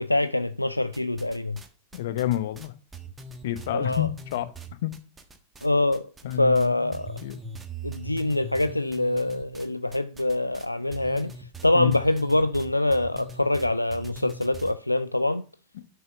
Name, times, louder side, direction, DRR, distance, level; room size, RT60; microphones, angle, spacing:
voice 1, 0.0-1.6 3.7-4.1 5.6-6.1 6.4-7.2 7.8-11.3 11.6-15.4, left 2 dB, 85° left, 0.3 m, -24 dB
sound 1, 0.9-1.7 1.9-5.7 5.9-6.7 6.9-14.7, right 2 dB, 15° right, 1.4 m, -41 dB
voice 2, 1.9-2.7 3.4-4.5 4.8-4.9 6.2-7.4 11.7-12.0, left 14 dB, 55° left, 0.9 m, -29 dB
6.4 x 6.0 x 6.7 m
figure-of-eight pair, 90°, 0 cm